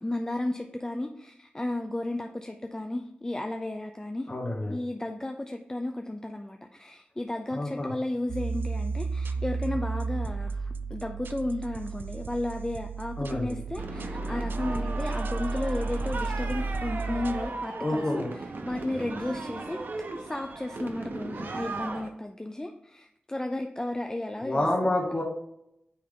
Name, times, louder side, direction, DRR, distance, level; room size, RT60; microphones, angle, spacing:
voice 1, 0.0-4.3 4.7-18.2 18.6-19.8 20.2-24.7, left 1 dB, 20° left, 5 dB, 0.4 m, -33 dB
voice 2, 4.3-4.8 7.5-8.0 13.2-13.5 17.8-18.3 24.4-25.2, left 1 dB, 35° left, -1 dB, 1.3 m, -28 dB
sound 1, 8.3-17.4, right 4 dB, 90° right, 0.3 m, -33 dB
sound 2, 13.8-22.1, right 3 dB, 70° right, 0.8 m, -37 dB
8.6 x 3.4 x 3.7 m, 0.79 s
wide cardioid pair, 85°, 3 cm